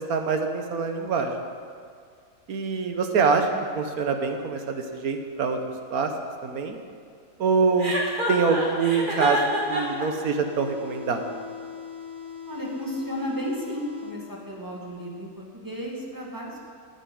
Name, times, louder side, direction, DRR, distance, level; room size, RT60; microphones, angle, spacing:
voice 1, 0.0-1.3 2.5-3.5 3.7-5.6 5.9-6.1 6.4-6.8 7.4-7.9 8.3-11.4, right 5 dB, 60° right, 5 dB, 1.4 m, -25 dB
Chuckle chortle, 7.8-10.0, equal, 30° right, 2.1 m, -27 dB
sound 1, 8.6-14.6, left 7 dB, 85° right, 2.8 m, -40 dB
voice 2, 12.5-16.7, equal, 10° right, -2 dB, 1.8 m, -33 dB
9.3 x 8.9 x 9.2 m, 2.2 s
omnidirectional pair, 1.8 m